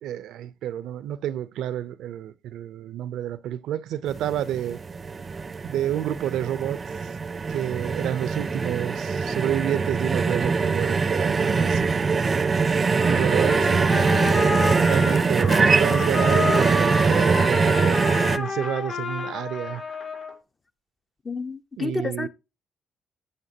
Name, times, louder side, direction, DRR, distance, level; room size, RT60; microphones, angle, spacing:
voice 1, 0.0-4.8 5.6-6.8 7.5-12.2 13.0-18.0 18.3-19.8 21.8-22.3, right 11 dB, 85° right, 0.5 m, -30 dB
sound 1, 4.1-18.4, right 4 dB, 35° right, 0.5 m, -23 dB
Trumpet, 13.0-20.3, left 3 dB, 65° left, 3.6 m, -29 dB
voice 2, 21.2-22.3, left 3 dB, 30° left, 0.7 m, -30 dB
12.5 x 7.8 x 2.8 m
cardioid pair, 90°, 0 cm